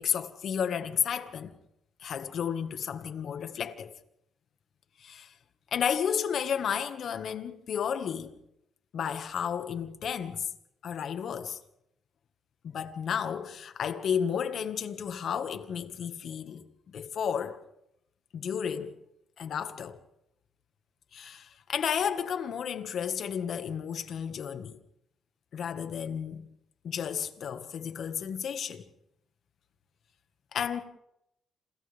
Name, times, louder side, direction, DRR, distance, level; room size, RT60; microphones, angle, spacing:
voice 1, 0.0-1.5 2.0-3.9 5.0-5.3 5.7-8.4 8.9-10.5 10.8-11.6 12.6-16.7 16.9-17.6 18.3-19.0 19.4-20.0 21.1-24.8 25.5-26.5 26.8-28.8 30.5-30.8, left 8 dB, 60° left, 1.8 m, -32 dB
29.0 x 27.5 x 3.6 m
cardioid pair, 90°, 0 cm